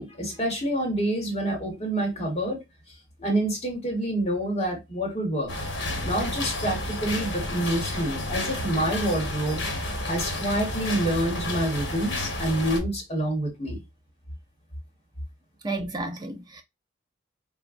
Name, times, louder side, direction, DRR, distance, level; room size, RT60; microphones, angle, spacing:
voice 1, 0.0-2.6 3.2-5.5 6.0-9.6 10.1-13.8, right 1 dB, 35° left, 1.1 m, -27 dB
sound 1, 5.5-12.8, left 1 dB, 75° left, 1.1 m, -31 dB
voice 2, 15.6-16.6, right 2 dB, 20° right, 0.5 m, -32 dB
3.5 x 2.2 x 2.4 m
head